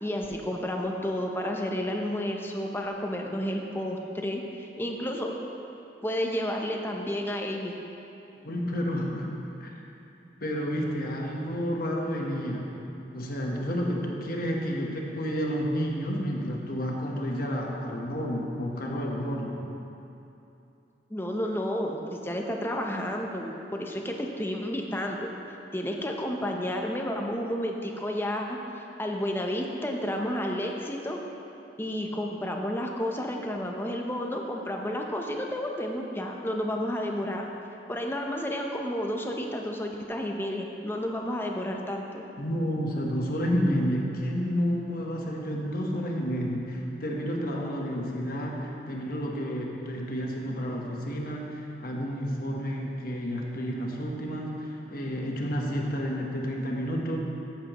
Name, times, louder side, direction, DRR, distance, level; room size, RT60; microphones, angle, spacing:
voice 1, 0.0-5.3 6.0-7.7 21.1-25.3 25.7-28.6 29.0-31.2 31.8-37.5 37.9-42.2, equal, 10° left, 1 dB, 0.7 m, -31 dB
voice 2, 8.4-9.3 9.6-9.7 10.4-12.7 13.1-19.5 42.4-57.2, equal, 50° left, -1 dB, 1.1 m, -30 dB
14.5 x 7.4 x 3.0 m, 2.9 s
head